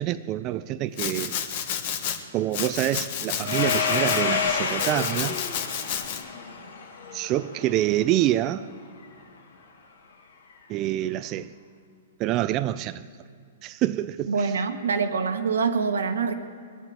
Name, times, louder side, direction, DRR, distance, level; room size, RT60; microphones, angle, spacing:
voice 1, 0.0-1.4 2.3-5.4 7.1-8.7 10.7-11.5 12.2-13.1 13.6-14.5, right 13 dB, 30° right, 0.4 m, -26 dB
Domestic sounds home sounds, 1.0-2.2 2.5-4.2 4.8-6.2, left 8 dB, 50° left, 1.4 m, -31 dB
Domestic sounds home sounds 2, 3.4-7.9, left 6 dB, 80° left, 2.4 m, -28 dB
voice 2, 14.3-16.3, right 5 dB, 90° right, 1.4 m, -25 dB
21.5 x 7.5 x 8.8 m
hypercardioid pair, 150°, 0 cm